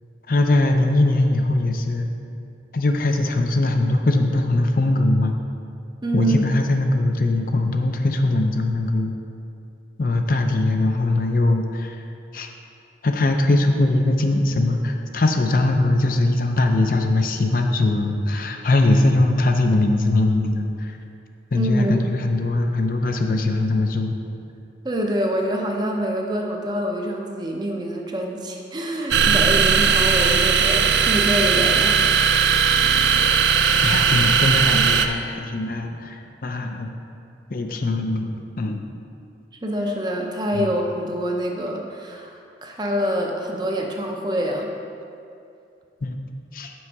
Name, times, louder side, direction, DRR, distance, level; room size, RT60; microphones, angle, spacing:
voice 1, 0.3-2.1 2.7-5.4 6.1-9.1 10.0-12.0 12.3-12.5 13.0-21.0 21.5-24.1 32.7-32.8 33.1-33.3 33.5-36.9 37.5-38.8 40.5-40.7 46.0-46.2 46.5-46.7, left 2 dB, 50° left, 4 dB, 0.5 m, -21 dB
voice 2, 6.0-6.4 21.5-22.2 24.8-32.1 39.6-44.7, right 1 dB, 25° right, 1 dB, 0.6 m, -25 dB
sound 1, 29.1-35.1, right 6 dB, 75° right, 0.4 m, -18 dB
6.1 x 5.8 x 4.6 m, 2.5 s
head